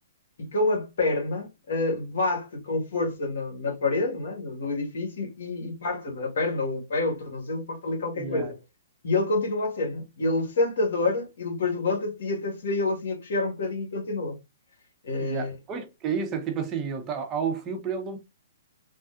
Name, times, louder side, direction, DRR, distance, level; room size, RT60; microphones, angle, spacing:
voice 1, 0.4-8.5 9.0-14.4 15.0-15.5, left 2 dB, 70° left, 1.4 m, -28 dB
voice 2, 8.2-8.5 15.2-18.2, right 6 dB, 20° right, 0.7 m, -31 dB
3.5 x 2.3 x 2.3 m
hypercardioid pair, 150°, 0 cm